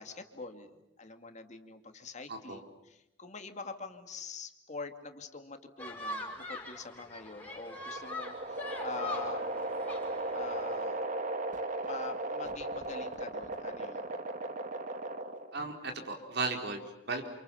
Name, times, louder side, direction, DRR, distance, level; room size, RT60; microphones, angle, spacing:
voice 1, 0.0-9.7 10.3-11.0 11.8-14.1, left 4 dB, 40° left, 6 dB, 2.4 m, -45 dB
voice 2, 2.3-2.6 15.5-17.3, right 3 dB, 60° right, 4 dB, 4.3 m, -36 dB
sound 1, 5.8-10.8, left 2 dB, 10° left, 6.1 m, -43 dB
sound 2, 7.4-15.6, right 2 dB, 45° right, 2.0 m, -37 dB
29.5 x 28.0 x 7.1 m, 0.86 s
head